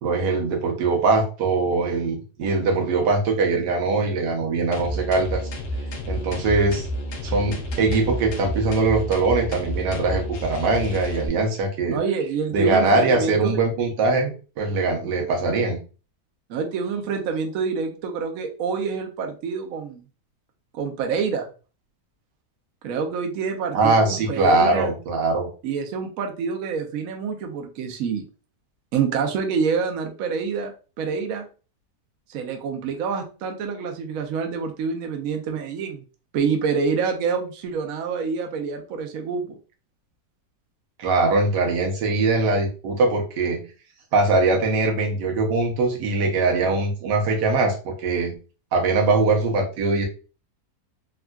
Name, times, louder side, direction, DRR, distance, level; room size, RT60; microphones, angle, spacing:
voice 1, 0.0-5.4 6.1-6.9 7.2-12.0 12.5-15.8 23.7-25.5 41.0-43.6 44.1-48.3 48.7-50.1, right 3 dB, 85° right, 2 dB, 1.4 m, -22 dB
sound 1, 4.7-11.3, equal, 65° left, 0.7 m, -30 dB
voice 2, 11.9-13.6 16.5-20.0 20.7-21.5 22.8-24.9 25.6-28.2 28.9-30.7 31.0-31.5 32.3-36.0 36.3-39.6, right 5 dB, 65° right, 4 dB, 0.9 m, -27 dB
3.5 x 2.3 x 2.2 m, 0.35 s
omnidirectional pair, 1.8 m